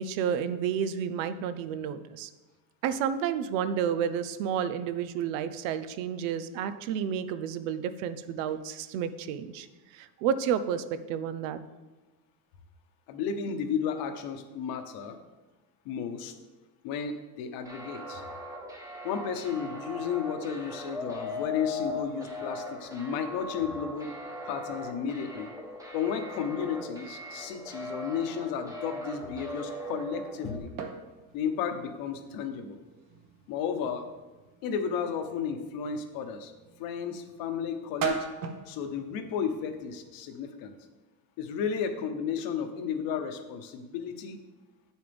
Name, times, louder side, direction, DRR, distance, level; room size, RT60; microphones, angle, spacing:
voice 1, 0.0-2.3 2.8-9.7 9.9-11.6, right 8 dB, 85° right, 12 dB, 0.7 m, -31 dB
voice 2, 13.1-15.2 15.8-16.3 16.8-18.2 19.0-24.1 24.5-25.5 25.9-30.7 31.3-32.8 33.5-34.1 34.6-36.5 36.8-38.3 38.7-40.7 41.4-44.4, left 7 dB, 60° left, 7 dB, 1.1 m, -33 dB
sound 1, 17.7-30.6, left 1 dB, 10° right, 1.0 m, -39 dB
sound 2, 29.4-40.1, right 7 dB, 55° right, 1.2 m, -42 dB
8.8 x 7.3 x 3.5 m, 1.2 s
cardioid pair, 145°, 39 cm